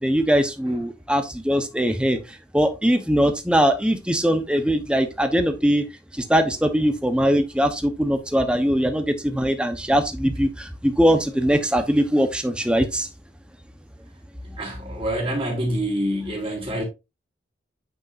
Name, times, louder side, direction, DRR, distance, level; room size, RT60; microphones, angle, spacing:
voice 1, 0.0-2.2 2.5-5.8 6.1-13.1, equal, 5° right, 0.9 m, -21 dB
voice 2, 14.4-16.8, equal, 30° right, 3.4 m, -26 dB
9.3 x 5.3 x 2.6 m
head